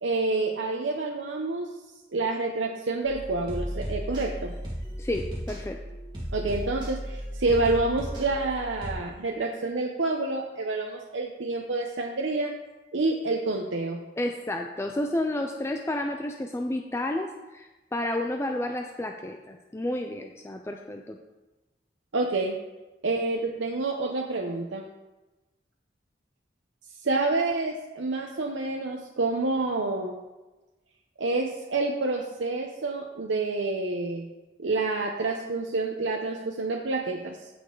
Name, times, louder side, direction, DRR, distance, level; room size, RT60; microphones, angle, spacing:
voice 1, 0.0-1.7 2.1-4.5 6.3-12.5 12.9-14.0 22.1-22.6 23.0-24.8 27.0-30.1 31.2-34.3 34.6-37.5, right 3 dB, 90° right, 0 dB, 0.8 m, -28 dB
sound 1, 3.0-8.9, equal, 25° right, 2.3 m, -35 dB
voice 2, 5.0-5.8 14.2-17.3 17.5-21.2, left 1 dB, 15° left, 3 dB, 0.4 m, -31 dB
15.0 x 5.2 x 3.9 m, 1.1 s
head